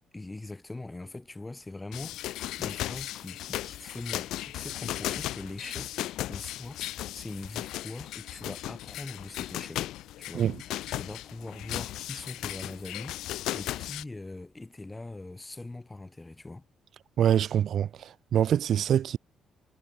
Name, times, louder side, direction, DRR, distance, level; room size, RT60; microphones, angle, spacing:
voice 1, 0.1-2.2 2.6-9.9 10.2-10.5 10.9-16.6, left 2 dB, 15° left, 1.5 m, -42 dB
sound 1, 1.9-14.0, left 14 dB, 90° left, 1.5 m, -36 dB
voice 2, 17.2-19.2, right 9 dB, 65° right, 0.8 m, -25 dB
cardioid pair, 90°, 0 cm